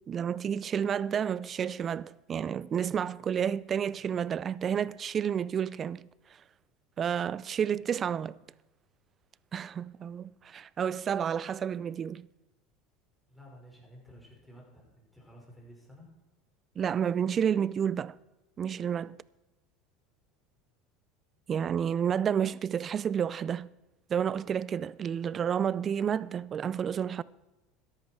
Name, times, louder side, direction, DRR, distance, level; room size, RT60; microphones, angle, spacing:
voice 1, 0.1-6.1 7.0-8.4 9.5-12.3 16.8-18.2 18.6-19.2 21.5-23.7 24.1-27.2, right 8 dB, 35° right, 0.4 m, -30 dB
voice 2, 13.3-16.1, equal, 5° left, 5.7 m, -53 dB
13.5 x 11.0 x 4.6 m
supercardioid pair, 105°, 0 cm